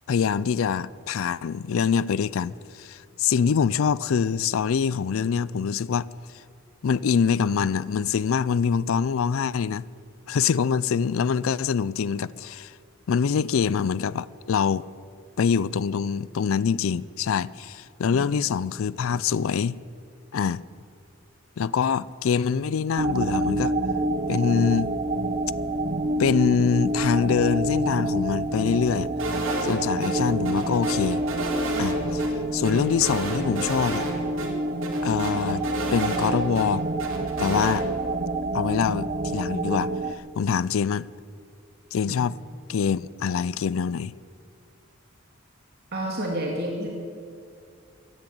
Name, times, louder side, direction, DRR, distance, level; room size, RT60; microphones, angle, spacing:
voice 1, 0.1-6.1 6.8-9.9 10.3-12.7 13.1-14.8 15.4-19.8 20.3-20.6 21.6-23.7 24.3-24.9 26.2-29.1 29.6-31.2 31.8-32.2 32.5-34.1 35.0-35.6 35.9-36.9 37.4-37.9 38.5-39.9 40.4-41.1 41.9-42.4 42.7-44.1, left 6 dB, 70° left, 0.4 m, -24 dB
sound 1, 23.0-40.1, right 1 dB, 35° right, 0.6 m, -27 dB
sound 2, 29.2-30.1 30.5-31.9 32.2-32.3 32.6-34.1 34.4-34.5 34.8-36.7 37.0-37.8, right 2 dB, 65° right, 2.9 m, -31 dB
voice 2, 45.9-46.9, right 1 dB, 50° right, 2.2 m, -29 dB
16.0 x 11.0 x 7.6 m
head